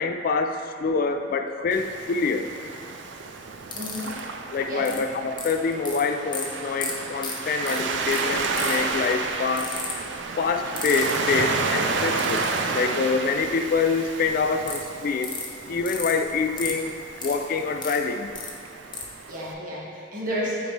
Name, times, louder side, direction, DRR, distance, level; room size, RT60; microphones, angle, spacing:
voice 1, 0.0-2.5 4.5-9.8 10.4-12.5 12.7-15.4 15.7-16.9 17.2-18.3, left 4 dB, 50° left, 7 dB, 0.3 m, -26 dB
Waves surf, 1.7-19.5, right 4 dB, 90° right, 0.5 m, -31 dB
sound 1, 3.7-4.2 4.8-5.0 5.4-6.0 6.3-6.4 6.8-6.9 7.2-7.3 7.7-7.8 8.1-8.2 8.6-8.9 9.6-9.9 10.8-11.2 12.2-12.6 14.7-14.8 15.2-15.5 15.9-16.1 16.6-16.7 17.2-18.0 18.3-18.5 18.9-19.0, left 5 dB, 25° left, 0.8 m, -32 dB
voice 2, 3.7-4.1 4.7-4.9 19.2-20.7, equal, 50° right, -6 dB, 1.6 m, -31 dB
9.2 x 4.1 x 3.2 m, 2.2 s
head